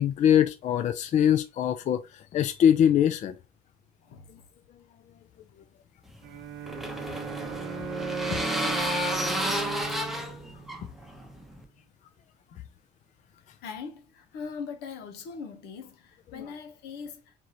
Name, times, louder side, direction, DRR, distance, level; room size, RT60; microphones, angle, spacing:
voice 1, 0.0-3.3 16.4-16.5, left 9 dB, 45° left, 0.4 m, -23 dB
sound 1, 6.1-11.6, equal, ahead, 0.8 m, -31 dB
Bowed string instrument, 6.2-11.5, right 10 dB, 70° right, 0.6 m, -39 dB
voice 2, 13.6-17.3, left 5 dB, 85° left, 1.0 m, -41 dB
4.6 x 2.6 x 2.9 m
cardioid pair, 110°, 17 cm